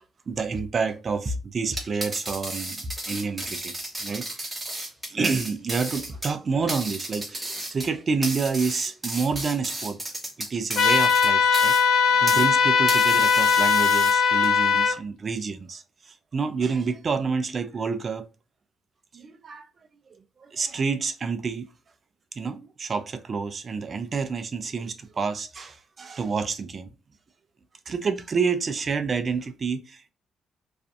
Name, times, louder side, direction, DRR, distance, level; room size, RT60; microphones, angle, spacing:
voice 1, 0.3-3.7 4.0-4.5 5.1-10.0 10.4-18.3 19.1-19.7 20.1-21.7 22.4-26.9 27.9-30.1, right 5 dB, 40° right, 0.4 m, -29 dB
sound 1, 1.7-12.5 12.9-14.5, right 1 dB, 15° right, 0.9 m, -34 dB
sound 2, 10.8-14.9, left 6 dB, 70° left, 0.6 m, -19 dB
2.5 x 2.5 x 2.2 m
cardioid pair, 90°, 0 cm